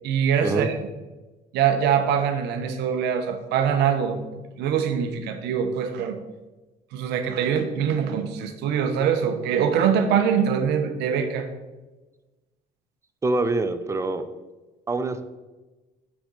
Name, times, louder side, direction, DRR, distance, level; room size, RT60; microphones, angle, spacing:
voice 1, 0.0-0.8 1.5-4.2 4.6-6.2 6.9-11.5, right 7 dB, 80° right, 6 dB, 0.8 m, -23 dB
voice 2, 13.2-14.2 14.9-15.2, right 2 dB, 15° right, 10 dB, 0.5 m, -25 dB
5.9 x 5.0 x 4.0 m, 1.2 s
cardioid pair, 110°, 17 cm